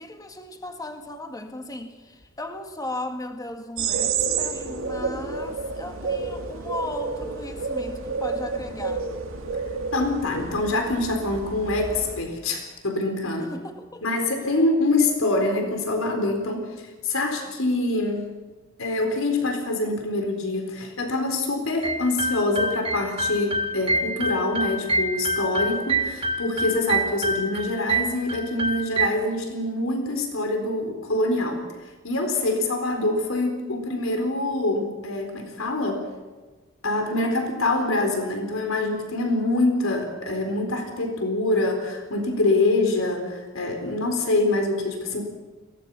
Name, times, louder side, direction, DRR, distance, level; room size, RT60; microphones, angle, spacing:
voice 1, 0.0-9.1 13.4-14.1, left 1 dB, 20° left, 5 dB, 1.9 m, -36 dB
sound 1, 3.8-12.2, right 5 dB, 85° right, 2.6 m, -30 dB
voice 2, 9.9-13.5 14.0-16.7 17.0-18.3 18.8-31.6 32.0-36.1 36.8-45.2, left 2 dB, 90° left, 4 dB, 4.1 m, -25 dB
sound 2, 21.8-29.1, right 2 dB, 30° right, 1.4 m, -27 dB
22.5 x 18.0 x 7.1 m, 1.3 s
head